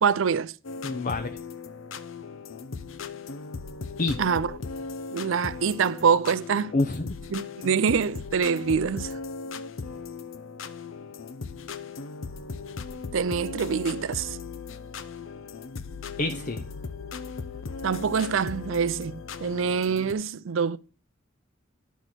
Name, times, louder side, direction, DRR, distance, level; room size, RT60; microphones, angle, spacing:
voice 1, 0.0-0.5 4.2-4.5 5.1-6.7 7.3-9.1 13.1-14.4 17.8-20.8, right 6 dB, 75° right, 0.5 m, -25 dB
sound 1, 0.6-20.1, left 4 dB, 85° left, 0.7 m, -38 dB
voice 2, 0.8-1.4 4.0-4.2 6.7-7.2 16.2-16.6, left 2 dB, 45° left, 0.6 m, -27 dB
10.0 x 4.2 x 6.1 m
head